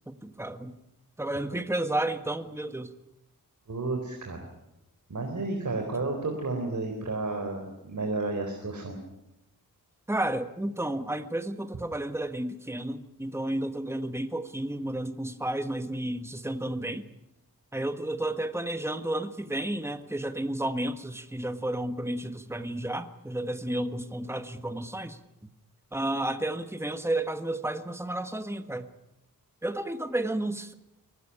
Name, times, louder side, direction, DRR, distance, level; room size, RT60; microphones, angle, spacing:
voice 1, 0.1-0.7 1.2-2.9 10.1-17.1 17.7-25.2 25.9-28.9 29.6-30.7, right 1 dB, 5° right, 9 dB, 1.4 m, -32 dB
voice 2, 3.7-4.5 5.1-9.0, right 3 dB, 55° right, 4 dB, 4.1 m, -32 dB
23.5 x 19.0 x 9.9 m, 0.89 s
wide cardioid pair, 110°, 35 cm